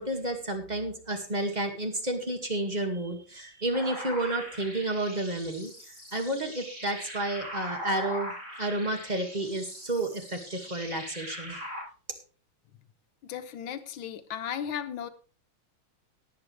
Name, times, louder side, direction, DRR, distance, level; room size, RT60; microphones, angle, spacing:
voice 1, 0.0-8.3 8.6-11.7, right 1 dB, 20° right, 4 dB, 2.1 m, -31 dB
sound 1, 3.7-11.8, equal, 50° right, 7.8 m, -41 dB
voice 2, 13.2-15.1, left 9 dB, 75° left, 10 dB, 1.8 m, -35 dB
18.5 x 8.6 x 3.4 m, 0.38 s
omnidirectional pair, 2.3 m